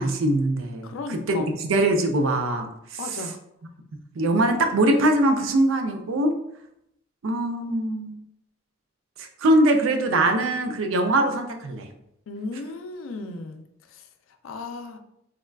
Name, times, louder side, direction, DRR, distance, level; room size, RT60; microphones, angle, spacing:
voice 1, 0.0-3.3 4.1-6.3 7.2-8.2 9.2-11.9, right 1 dB, 80° right, 5 dB, 0.4 m, -22 dB
voice 2, 0.8-1.6 3.0-3.4 12.3-13.6 13.9-14.0 14.4-15.0, left 3 dB, 85° left, 6 dB, 0.4 m, -35 dB
3.5 x 2.3 x 2.2 m, 0.78 s
head